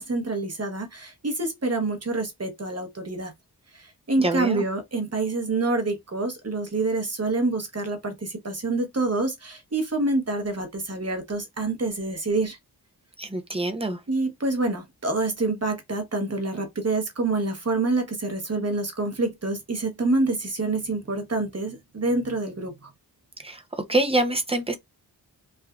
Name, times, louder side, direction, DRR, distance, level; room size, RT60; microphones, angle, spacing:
voice 1, 0.0-3.3 3.7-12.6 14.1-22.9, right 2 dB, 35° right, 0.9 m, -27 dB
voice 2, 4.2-4.6 13.2-14.0 23.4-24.8, right 1 dB, 15° right, 0.5 m, -26 dB
3.2 x 2.5 x 2.3 m
wide cardioid pair, 55°, 41 cm